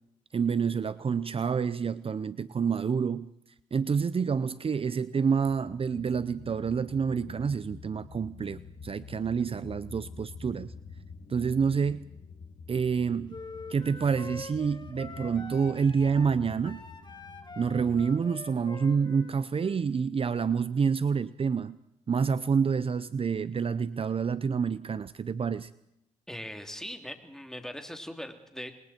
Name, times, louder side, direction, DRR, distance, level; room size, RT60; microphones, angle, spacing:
voice 1, 0.3-3.3 3.7-10.7 11.3-12.1 12.7-13.4 13.7-16.8 17.6-21.8 22.1-25.7, right 6 dB, 45° right, 15 dB, 0.7 m, -28 dB
sound 1, 5.5-18.1, left 5 dB, 55° left, 1.7 m, -47 dB
sound 2, 13.3-19.8, left 3 dB, 35° left, 3.1 m, -45 dB
voice 2, 26.3-28.7, equal, 5° left, 5 dB, 3.3 m, -40 dB
28.0 x 22.0 x 4.5 m, 0.79 s
cardioid pair, 75°, 13 cm